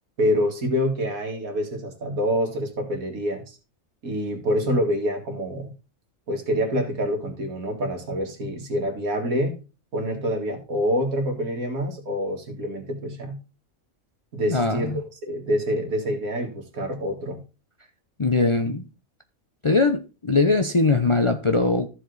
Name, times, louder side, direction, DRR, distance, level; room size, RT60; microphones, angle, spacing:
voice 1, 0.2-3.6 4.0-5.7 6.3-9.6 9.9-13.4 14.3-17.4, equal, 90° right, 2.3 m, -26 dB
voice 2, 14.5-14.8 18.2-18.8 19.6-21.9, left 3 dB, 35° left, 0.5 m, -21 dB
14.0 x 4.9 x 3.9 m
omnidirectional pair, 1.4 m